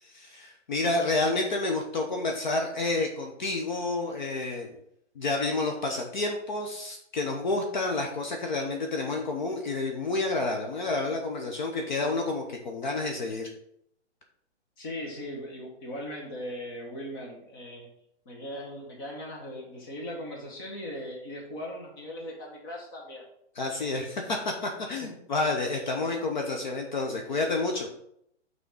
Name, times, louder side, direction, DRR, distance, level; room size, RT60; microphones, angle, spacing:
voice 1, 0.0-4.8 5.2-13.5 23.6-27.9, left 2 dB, 40° left, 2 dB, 0.8 m, -29 dB
voice 2, 14.8-17.9 18.2-23.2 25.0-25.1, left 1 dB, 20° left, 0 dB, 0.9 m, -39 dB
5.8 x 3.8 x 5.4 m, 0.73 s
hypercardioid pair, 175°, 35 cm